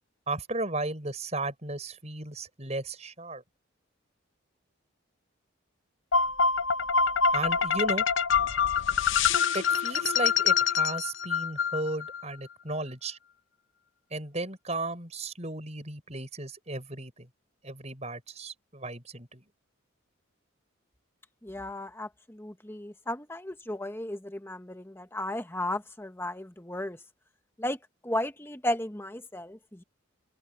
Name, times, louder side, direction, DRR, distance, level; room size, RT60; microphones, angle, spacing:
voice 1, 0.3-3.4 7.3-8.1 9.5-13.2 14.1-17.3 17.6-19.4, right 2 dB, 30° right, 6.4 m, -35 dB
sound 1, 6.1-12.2, left 6 dB, 65° left, 0.7 m, -25 dB
voice 2, 21.4-27.0 27.6-29.8, left 1 dB, 10° left, 1.2 m, -35 dB
head